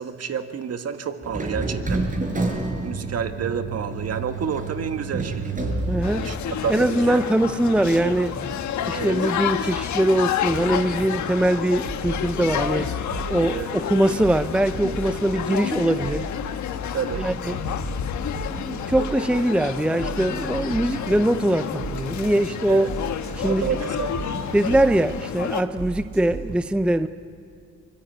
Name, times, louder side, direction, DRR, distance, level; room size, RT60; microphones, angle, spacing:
voice 1, 0.0-2.0 2.8-5.5 6.1-6.4 6.6-7.3 8.9-9.2 13.5-13.7 16.9-17.2 22.7-22.9 23.4-24.2, right 7 dB, 55° right, 8 dB, 1.6 m, -29 dB
sound 1, 1.2-12.5, right 2 dB, 25° right, 4.8 m, -31 dB
voice 2, 5.9-6.3 6.7-8.3 8.9-12.9 13.3-16.3 17.2-17.6 18.5-22.9 23.4-23.8 24.5-27.1, right 1 dB, 5° right, 12 dB, 0.6 m, -22 dB
sound 2, 6.0-25.6, left 9 dB, 70° left, 1.4 m, -30 dB
sound 3, 11.8-13.5 13.8-15.2 15.6-16.3 16.7-21.1 21.4-22.1 22.5-25.0 25.4-26.5, right 5 dB, 70° right, 6.6 m, -35 dB
24.0 x 22.0 x 9.2 m, 2.5 s
cardioid pair, 90°, 30 cm